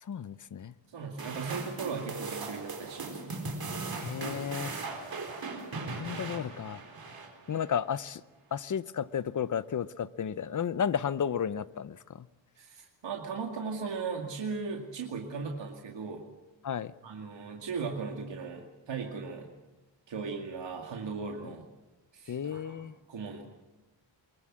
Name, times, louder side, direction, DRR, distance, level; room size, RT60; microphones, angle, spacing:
voice 1, 0.0-0.7 4.0-4.8 5.9-6.8 7.5-8.2 8.5-12.3 16.6-16.9 21.4-21.5 22.3-23.0, left 8 dB, 40° left, 16 dB, 0.7 m, -33 dB
voice 2, 0.9-3.4 12.6-16.2 17.0-19.5 20.1-21.6 22.1-22.8 23.1-23.4, right 5 dB, 70° right, 1 dB, 2.4 m, -37 dB
sound 1, 1.2-7.7, right 3 dB, 50° right, 4.4 m, -38 dB
23.5 x 22.0 x 7.5 m, 1.0 s
wide cardioid pair, 150°, 46 cm